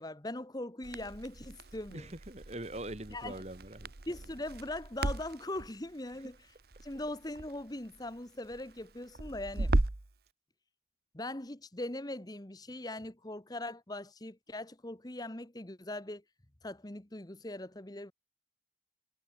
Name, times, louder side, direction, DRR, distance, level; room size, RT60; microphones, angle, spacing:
voice 1, 0.0-2.1 3.1-3.4 4.1-6.4 6.8-9.7 11.1-16.2 16.6-18.1, left 1 dB, 20° left, 1.2 m, -41 dB
Crackle, 0.8-10.1, right 2 dB, 55° right, 1.1 m, -37 dB
voice 2, 1.9-3.9, right 1 dB, 35° right, 2.7 m, -42 dB
head